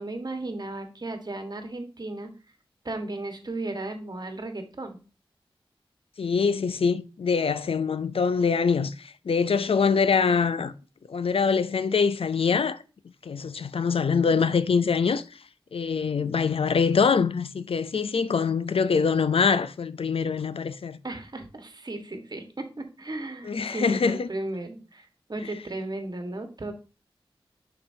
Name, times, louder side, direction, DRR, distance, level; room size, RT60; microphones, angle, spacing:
voice 1, 0.0-2.3 2.8-5.0 21.0-26.7, right 2 dB, 45° right, 1.5 m, -35 dB
voice 2, 6.2-10.7 11.1-12.8 13.2-15.2 15.7-21.0 23.4-24.3, left 5 dB, 85° left, 0.5 m, -24 dB
6.8 x 5.3 x 2.7 m
wide cardioid pair, 65°, 9 cm